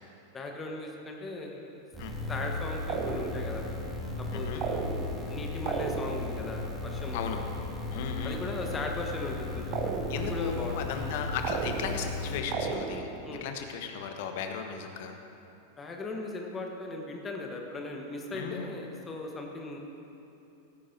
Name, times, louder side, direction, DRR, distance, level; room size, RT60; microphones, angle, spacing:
voice 1, 0.3-1.9 2.3-3.6 4.2-4.8 5.3-7.4 8.2-9.9 10.2-10.7 12.3-12.5 13.2-13.5 15.8-19.8, left 2 dB, 20° left, 1 dB, 1.3 m, -38 dB
Monotribe feedback, 1.9-12.4, left 3 dB, ahead, 2.1 m, -36 dB
sound 1, 2.9-3.6 4.6-5.3 5.7-6.4 9.7-10.5 11.4-12.2 12.5-13.2, right 6 dB, 40° right, 1.0 m, -34 dB
voice 2, 4.3-4.6 7.1-7.4 7.9-8.4 10.1-15.1 18.3-18.7, left 6 dB, 50° left, 5 dB, 1.1 m, -36 dB
15.5 x 14.0 x 2.8 m, 2.9 s
figure-of-eight pair, 90°, 0 cm